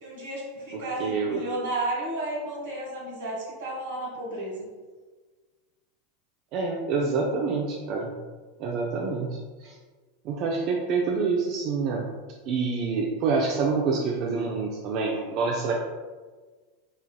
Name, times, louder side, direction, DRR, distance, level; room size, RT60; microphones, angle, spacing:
voice 1, 0.0-4.7, right 2 dB, 80° right, -4 dB, 1.4 m, -33 dB
voice 2, 1.0-1.4 6.5-8.1 8.6-9.8 10.2-12.1 12.5-15.7, right 4 dB, 50° right, -1 dB, 0.4 m, -27 dB
3.8 x 3.0 x 2.2 m, 1.4 s
hypercardioid pair, 105°, 0 cm